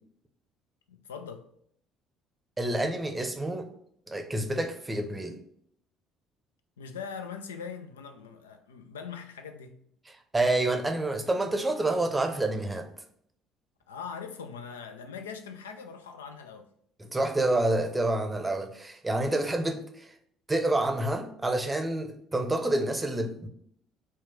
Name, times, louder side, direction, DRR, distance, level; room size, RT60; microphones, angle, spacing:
voice 1, 0.9-1.5 6.8-9.8 13.9-16.7, left 6 dB, 75° left, 0.4 m, -41 dB
voice 2, 2.6-3.7 4.1-5.4 10.3-12.9 17.1-20.1 20.5-23.5, right 2 dB, 15° right, 0.6 m, -28 dB
4.4 x 2.3 x 4.4 m
figure-of-eight pair, 55°, 0 cm